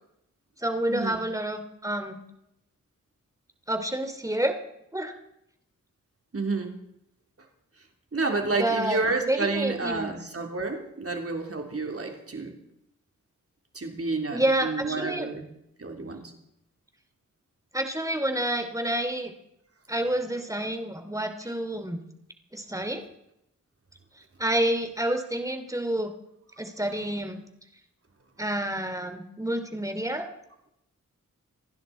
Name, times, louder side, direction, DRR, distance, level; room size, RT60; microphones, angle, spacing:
voice 1, 0.6-2.2 3.7-4.6 4.9-5.1 8.5-9.0 9.3-10.1 14.3-15.3 17.7-19.3 19.9-22.0 22.5-23.0 24.4-26.1 26.6-27.4 28.4-30.3, right 1 dB, 10° right, 7 dB, 2.7 m, -28 dB
voice 2, 6.3-6.8 8.1-12.6 13.7-15.5 15.8-16.3, right 3 dB, 45° right, 3 dB, 3.5 m, -30 dB
28.0 x 11.0 x 4.3 m, 0.81 s
cardioid pair, 50°, 32 cm